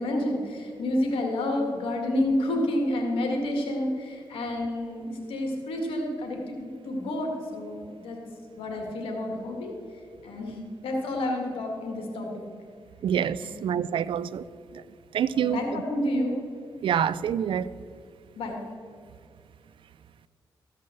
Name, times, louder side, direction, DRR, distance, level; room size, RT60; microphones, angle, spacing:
voice 1, 0.0-8.2 8.6-9.7 10.2-12.4 13.4-13.5 15.3-16.3 18.4-18.6, left 1 dB, 90° left, 1.9 m, -29 dB
voice 2, 13.0-14.4 15.1-15.6 16.8-17.7, right 9 dB, 70° right, 0.4 m, -26 dB
14.0 x 5.5 x 7.7 m
cardioid pair, 65°, 9 cm